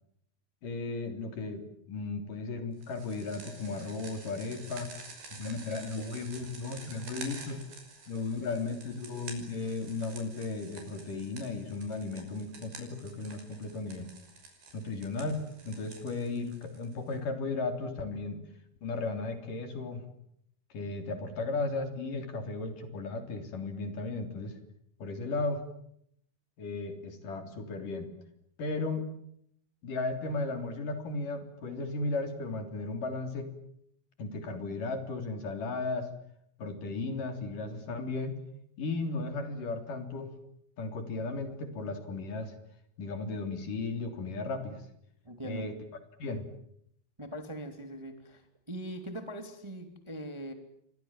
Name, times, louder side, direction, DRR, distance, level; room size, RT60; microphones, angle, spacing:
voice 1, 0.6-4.9 5.4-7.6 8.1-14.1 14.7-15.4 15.6-18.4 18.8-20.0 20.7-24.6 25.0-25.6 26.6-28.1 28.6-29.1 29.8-33.5 34.2-36.1 36.6-38.4 38.8-40.3 40.8-42.5 43.0-44.9 45.4-45.8 46.2-46.5, left 3 dB, 55° left, 7 dB, 4.8 m, -35 dB
sound 1, 2.8-17.1, right 4 dB, 85° right, 7.9 m, -49 dB
voice 2, 45.2-45.7 47.2-50.5, right 1 dB, 10° right, 7 dB, 2.4 m, -41 dB
29.5 x 24.5 x 7.4 m, 0.72 s
omnidirectional pair, 4.5 m